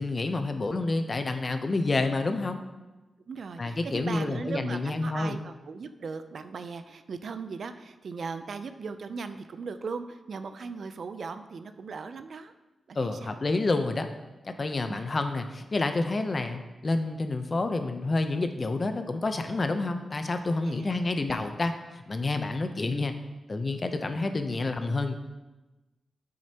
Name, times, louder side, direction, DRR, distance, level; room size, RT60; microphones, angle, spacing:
voice 1, 0.0-2.6 3.6-5.4 12.9-14.1 14.4-23.1 23.5-25.1, left 2 dB, 40° left, 7 dB, 0.7 m, -29 dB
voice 2, 3.3-12.5 12.9-13.4 14.9-15.0 20.6-20.9, right 4 dB, 65° right, 10 dB, 0.4 m, -38 dB
8.6 x 6.5 x 2.9 m, 1.1 s
cardioid pair, 70°, 0 cm